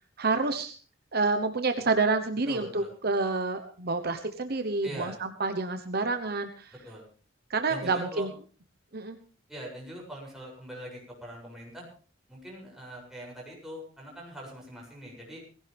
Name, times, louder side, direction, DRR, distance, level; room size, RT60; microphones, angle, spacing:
voice 1, 0.2-0.7 1.1-6.7 7.5-8.3 8.9-9.2, right 3 dB, 55° right, 8 dB, 1.1 m, -28 dB
voice 2, 2.5-2.9 4.8-5.2 6.8-7.0 7.7-8.3 9.5-11.9 12.3-15.4, right 1 dB, ahead, -3 dB, 7.5 m, -42 dB
19.0 x 16.5 x 3.5 m, 0.39 s
head